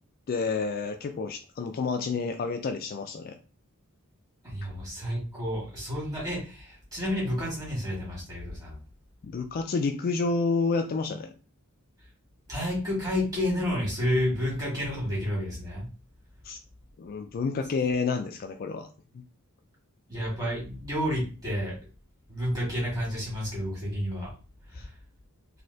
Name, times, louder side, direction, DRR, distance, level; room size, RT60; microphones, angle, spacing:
voice 1, 0.3-3.4 9.2-11.3 16.4-16.6 17.0-18.9 24.8-24.9, left 4 dB, 40° left, 6 dB, 0.3 m, -29 dB
voice 2, 4.4-8.8 12.5-15.9 20.1-21.8 22.3-24.3 24.7-24.8, equal, 15° right, -5 dB, 1.7 m, -30 dB
3.1 x 2.7 x 2.7 m, 0.35 s
head